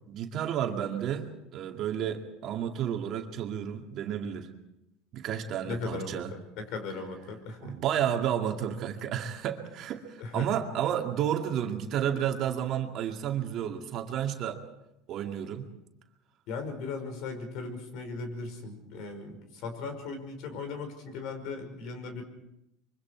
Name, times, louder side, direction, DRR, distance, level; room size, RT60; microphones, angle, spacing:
voice 1, 0.1-4.5 5.1-6.3 7.6-14.6 15.1-15.7, right 9 dB, 50° right, 3 dB, 2.3 m, -31 dB
voice 2, 5.7-7.8 10.2-10.5 16.5-22.2, left 4 dB, 60° left, 7 dB, 5.3 m, -38 dB
25.5 x 24.0 x 4.7 m, 0.86 s
supercardioid pair, 125°, 0 cm